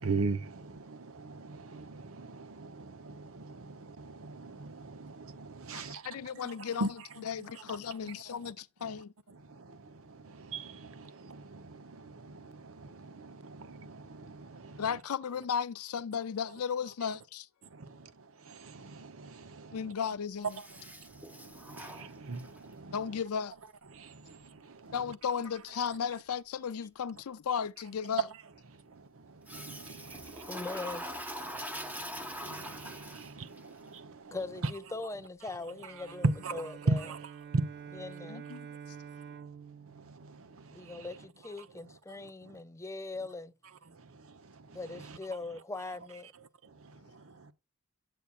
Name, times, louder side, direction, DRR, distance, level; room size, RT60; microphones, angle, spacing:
voice 1, 0.0-8.5 8.8-15.0 16.5-17.2 17.6-23.2 23.6-25.8 27.1-27.2 27.8-34.9 35.4-38.2 38.5-42.6 43.2-43.3 43.6-47.5, right 3 dB, 65° right, 0.9 m, -41 dB
voice 2, 6.0-6.8 7.3-9.1 14.8-17.5 19.7-20.5 22.9-23.5 24.9-28.2 38.3-38.7, left 7 dB, 75° left, 0.5 m, -35 dB
Toilet flush, 20.4-22.7 29.5-33.6, equal, 5° right, 0.8 m, -42 dB
voice 3, 30.5-31.1 34.3-36.2 36.5-37.0 38.0-38.5 40.7-43.5 44.7-46.3, left 3 dB, 15° left, 0.4 m, -41 dB
Bowed string instrument, 35.9-41.1, right 7 dB, 50° right, 0.3 m, -48 dB
8.4 x 7.7 x 2.5 m
head